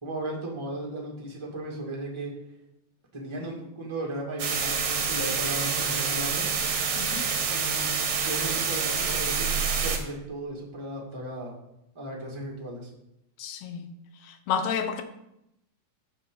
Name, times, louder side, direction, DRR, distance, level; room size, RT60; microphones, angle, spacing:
voice 1, 0.0-2.4 3.1-6.5 7.5-7.9 8.2-9.5 9.8-11.6 11.9-12.9, right 1 dB, 10° right, -2 dB, 1.7 m, -36 dB
sound 1, 4.4-10.0, right 5 dB, 55° right, 2.0 m, -27 dB
voice 2, 7.0-7.3 13.4-13.9 14.2-15.0, left 7 dB, 75° left, 8 dB, 2.3 m, -30 dB
14.5 x 6.0 x 3.9 m, 0.83 s
omnidirectional pair, 3.7 m